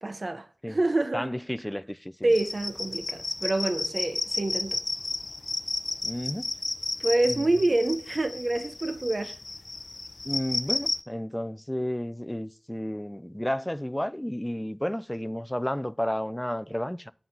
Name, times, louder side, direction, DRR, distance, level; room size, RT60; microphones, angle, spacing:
voice 1, 0.0-1.3 2.2-4.8 7.0-9.4, right 2 dB, 65° right, 0.6 m, -27 dB
voice 2, 1.1-2.3 6.0-6.5 7.2-7.5 10.2-17.1, equal, 10° left, 0.4 m, -32 dB
sound 1, 2.3-11.0, left 2 dB, 70° left, 0.5 m, -33 dB
9.3 x 3.9 x 5.8 m
wide cardioid pair, 50°, 0 cm